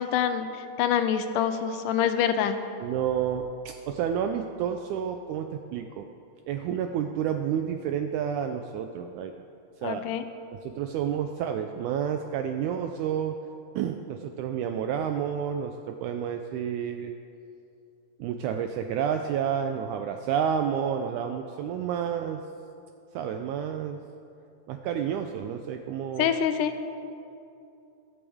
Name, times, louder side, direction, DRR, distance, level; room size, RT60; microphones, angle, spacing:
voice 1, 0.0-2.6 9.8-10.2 26.2-26.7, left 8 dB, 80° left, 9 dB, 2.1 m, -26 dB
voice 2, 2.8-6.1 6.5-9.3 9.8-10.1 10.6-13.4 13.7-17.1 18.2-22.4 23.1-24.0 24.7-26.3, right 8 dB, 85° right, 5 dB, 1.7 m, -30 dB
22.5 x 8.6 x 3.5 m, 2.6 s
omnidirectional pair, 4.0 m